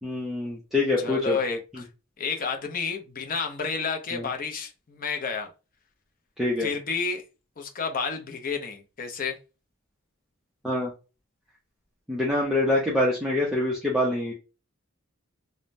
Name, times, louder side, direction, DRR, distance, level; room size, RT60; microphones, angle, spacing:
voice 1, 0.0-1.4 1.7-1.8 4.1-4.3 6.4-6.7 10.6-10.9 12.1-14.3, left 2 dB, ahead, -5 dB, 0.6 m, -25 dB
voice 2, 1.0-1.9 2.2-5.5 6.6-7.2 7.6-9.4, left 5 dB, 40° left, 4 dB, 0.6 m, -30 dB
3.2 x 2.1 x 2.5 m, 0.31 s
head